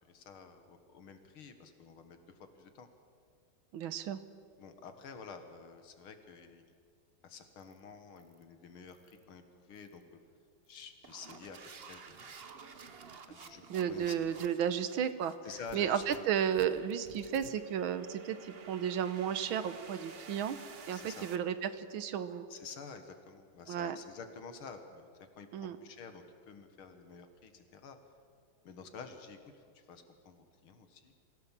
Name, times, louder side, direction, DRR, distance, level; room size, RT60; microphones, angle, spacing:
voice 1, 0.0-2.2 2.6-2.9 4.6-6.6 7.2-10.0 10.7-12.7 13.3-13.6 13.9-14.4 15.4-16.0 20.9-21.3 22.5-25.1 25.4-28.0 28.6-31.2, left 5 dB, 85° left, 7 dB, 2.5 m, -50 dB
voice 2, 3.7-4.2 13.7-15.3 15.7-20.6 20.9-22.5 23.7-24.0 25.5-25.8, right 9 dB, 75° right, 12 dB, 1.7 m, -33 dB
sound 1, 7.6-7.8 8.2-8.4 8.9-9.2 9.8-10.0 10.6-21.4, right 5 dB, 40° right, 0.9 m, -52 dB
24.5 x 16.0 x 7.4 m, 2.3 s
omnidirectional pair, 2.3 m